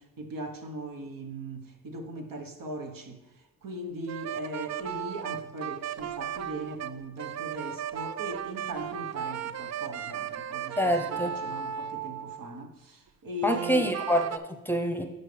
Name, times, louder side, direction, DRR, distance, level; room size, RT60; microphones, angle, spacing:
voice 1, 0.0-3.2 3.6-13.9, right 1 dB, 60° right, 1.3 m, -39 dB
sound 1, 4.1-12.6 13.5-14.4, right 9 dB, 45° right, 0.4 m, -36 dB
voice 2, 10.8-11.3 13.4-15.0, equal, 5° left, 0.8 m, -26 dB
12.0 x 4.1 x 3.4 m
supercardioid pair, 45°, 37 cm